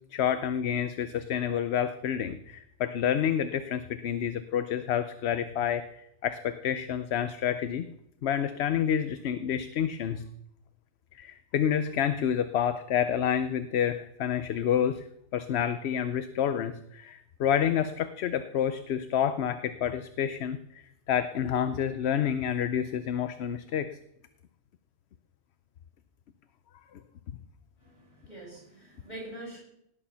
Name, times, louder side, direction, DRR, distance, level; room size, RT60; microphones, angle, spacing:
voice 1, 0.1-7.9 8.2-10.3 11.1-15.0 15.3-23.9, left 9 dB, 70° left, 11 dB, 0.9 m, -29 dB
voice 2, 27.8-29.6, right 1 dB, 40° left, -4 dB, 7.1 m, -44 dB
18.0 x 8.9 x 5.7 m, 0.78 s
omnidirectional pair, 1.2 m